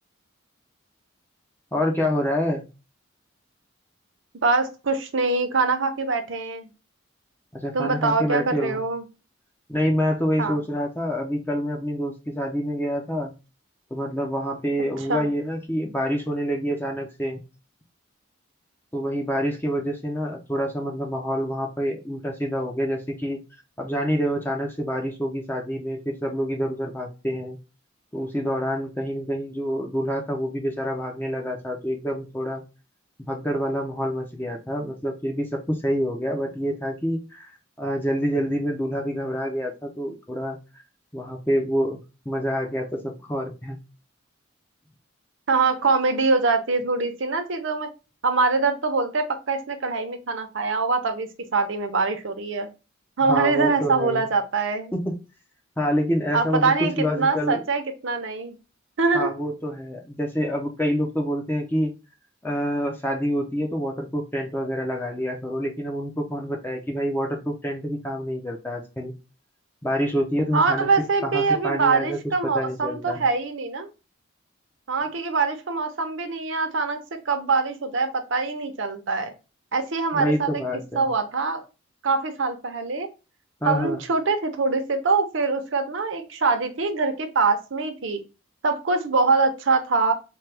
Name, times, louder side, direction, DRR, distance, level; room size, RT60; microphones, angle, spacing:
voice 1, 1.7-2.7 7.5-8.8 9.7-13.3 13.9-17.4 18.9-23.4 23.8-27.6 28.1-32.6 33.3-37.5 37.8-40.6 41.1-42.0 42.3-43.8 53.2-54.3 54.9-55.2 55.8-57.6 59.1-61.9 62.4-69.1 69.8-70.9 71.2-73.2 80.1-81.1 83.6-84.0, equal, 10° left, 1 dB, 0.5 m, -27 dB
voice 2, 4.4-6.7 7.7-9.0 10.4-10.6 15.1-15.3 45.5-47.9 48.2-52.7 53.2-54.9 56.3-58.6 59.0-59.3 70.5-73.9 74.9-77.0 77.3-79.3 79.7-80.6 81.0-81.6 82.0-83.1 83.6-88.2 88.6-90.1, right 4 dB, 65° right, 7 dB, 0.7 m, -23 dB
4.4 x 2.2 x 3.3 m, 0.30 s
head